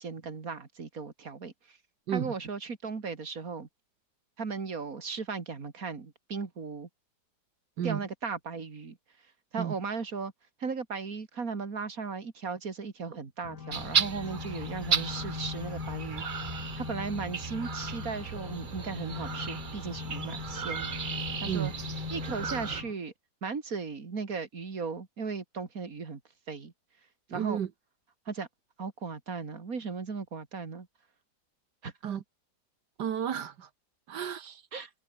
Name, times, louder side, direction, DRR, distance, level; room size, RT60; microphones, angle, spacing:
voice 1, 0.0-1.8 2.1-3.7 4.4-6.9 7.8-9.0 9.5-10.3 10.6-16.2 16.5-20.9 21.4-21.7 22.1-23.1 23.4-26.2 26.5-26.7 27.3-27.6 28.3-28.5 28.8-30.9 31.8-31.9 34.7-34.9, right 5 dB, 55° right, 2.9 m, -36 dB
sound 1, 13.4-22.9, left 6 dB, 75° left, 2.4 m, -40 dB
sound 2, 13.7-22.8, right 6 dB, 40° right, 0.8 m, -35 dB
voice 2, 27.3-27.7 32.0-32.2 33.0-33.7 34.1-34.6, right 9 dB, 85° right, 1.9 m, -32 dB
omnidirectional pair, 1.8 m